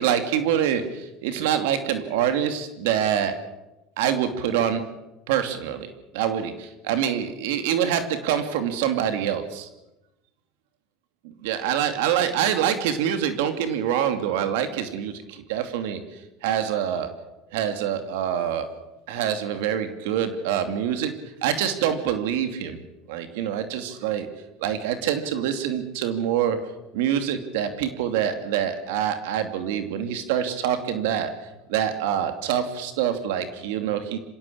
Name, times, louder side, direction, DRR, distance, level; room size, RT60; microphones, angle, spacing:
voice 1, 0.0-3.3 4.0-4.8 5.3-5.9 6.1-9.7 11.4-16.0 16.4-17.1 17.5-18.7 19.1-21.1 21.4-22.8 23.1-24.3 24.6-26.6 26.9-31.3 31.7-34.2, right 9 dB, 85° right, 8 dB, 2.7 m, -25 dB
26.0 x 17.0 x 8.6 m, 0.96 s
supercardioid pair, 115°, 0 cm